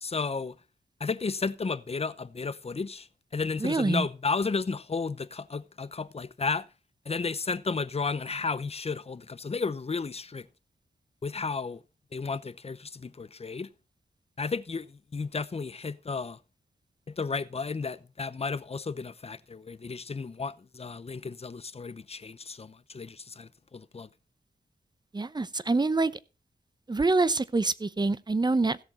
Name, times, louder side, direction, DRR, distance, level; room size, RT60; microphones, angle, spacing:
voice 1, 0.0-0.6 1.0-6.7 7.0-10.5 11.2-11.8 12.1-13.7 14.4-16.4 17.1-24.1, left 4 dB, 35° left, 0.8 m, -33 dB
voice 2, 3.6-4.1 25.1-26.1 26.9-28.8, right 3 dB, 25° right, 0.8 m, -26 dB
16.5 x 7.0 x 4.1 m
wide cardioid pair, 85°, 17 cm